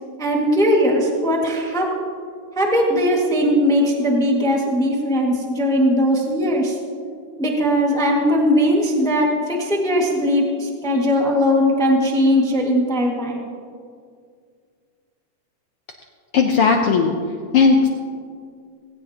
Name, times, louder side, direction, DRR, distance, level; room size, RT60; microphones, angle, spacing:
voice 1, 0.2-1.9 2.5-6.7 7.4-13.5, equal, ahead, -1 dB, 0.8 m, -19 dB
voice 2, 16.3-17.1 17.5-17.9, left 5 dB, 85° left, 2 dB, 1.2 m, -16 dB
19.0 x 16.5 x 2.9 m, 2.1 s
omnidirectional pair, 3.7 m